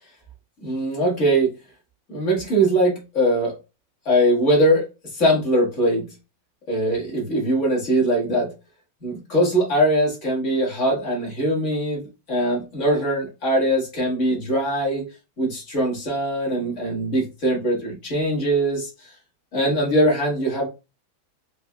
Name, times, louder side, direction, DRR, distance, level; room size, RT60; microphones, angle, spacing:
voice 1, 0.6-1.5 2.1-3.5 4.0-4.8 5.1-6.1 6.7-8.5 9.0-12.0 12.3-15.1 15.4-18.9 19.5-20.7, right 1 dB, 40° left, -2 dB, 1.7 m, -21 dB
4.3 x 3.1 x 2.2 m, 0.28 s
omnidirectional pair, 2.1 m